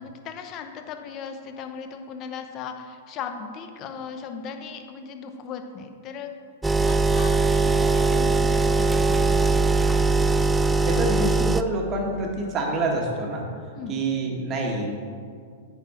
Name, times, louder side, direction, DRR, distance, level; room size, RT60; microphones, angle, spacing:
voice 1, 0.0-6.3 6.8-9.4 13.7-14.0, left 6 dB, 40° left, 6 dB, 0.8 m, -37 dB
sound 1, 6.6-11.6, right 3 dB, 10° right, 0.3 m, -21 dB
voice 2, 10.8-13.5 13.9-14.9, right 2 dB, 30° right, 0 dB, 1.5 m, -27 dB
9.0 x 4.3 x 5.7 m, 2.1 s
hypercardioid pair, 110°, 0 cm